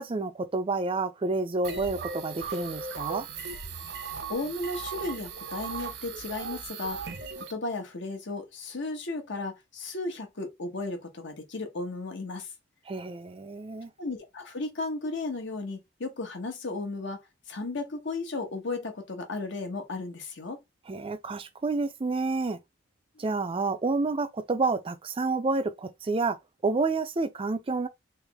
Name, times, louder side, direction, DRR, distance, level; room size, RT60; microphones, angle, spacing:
voice 1, 0.0-3.3 12.9-13.9 20.9-22.6 23.2-26.4 26.6-27.9, right 3 dB, 30° right, 0.5 m, -29 dB
sound 1, 1.6-7.5, right 5 dB, 60° right, 0.8 m, -37 dB
voice 2, 4.3-7.0 7.4-12.5 14.0-17.2 17.5-20.6, left 2 dB, 65° left, 1.1 m, -34 dB
3.4 x 3.0 x 3.4 m
head